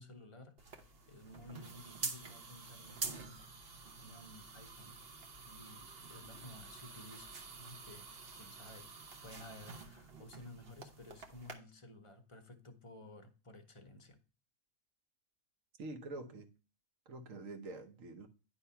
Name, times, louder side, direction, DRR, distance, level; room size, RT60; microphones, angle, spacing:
voice 1, 0.0-5.0 5.4-8.9 9.2-14.2, left 1 dB, 25° left, 0.7 m, -55 dB
sound 1, 0.6-11.5, right 4 dB, 45° right, 1.1 m, -48 dB
voice 2, 15.8-16.5 17.1-18.3, right 2 dB, 65° right, 1.4 m, -46 dB
10.0 x 3.4 x 5.7 m
omnidirectional pair, 1.5 m